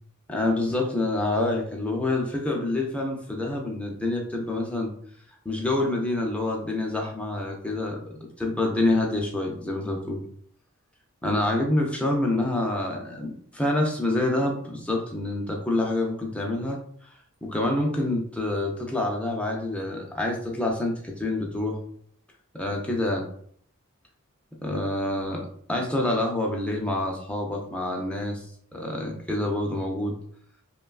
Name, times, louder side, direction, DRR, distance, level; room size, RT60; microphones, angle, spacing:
voice 1, 0.3-4.9 5.5-10.2 11.2-16.8 17.4-21.8 22.5-23.3 24.6-28.5 28.7-30.2, left 2 dB, 5° left, 0 dB, 0.3 m, -27 dB
3.0 x 2.2 x 2.3 m, 0.62 s
head